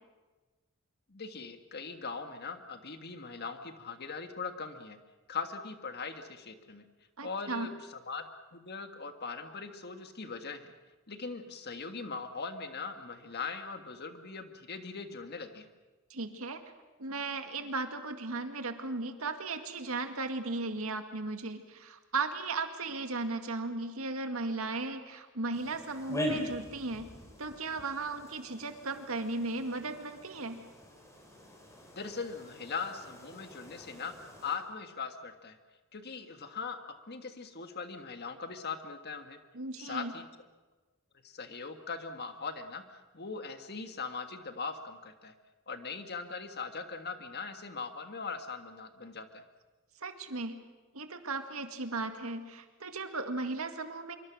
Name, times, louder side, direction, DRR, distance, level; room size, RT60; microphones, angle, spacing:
voice 1, 1.1-5.0 5.3-6.9 7.2-10.7 11.1-15.7 31.9-34.1 34.4-35.6 35.9-36.8 37.1-39.4 39.8-40.2 41.2-42.8 43.1-45.3 45.7-49.4, left 5 dB, 50° left, 7 dB, 1.7 m, -40 dB
voice 2, 7.2-7.7 16.1-16.6 17.0-27.1 27.4-30.6 39.5-40.1 50.0-50.6 50.9-54.2, right 3 dB, 80° right, 7 dB, 2.0 m, -36 dB
sound 1, 25.5-34.6, equal, 15° left, 4.1 m, -42 dB
25.5 x 23.5 x 6.3 m, 1.2 s
head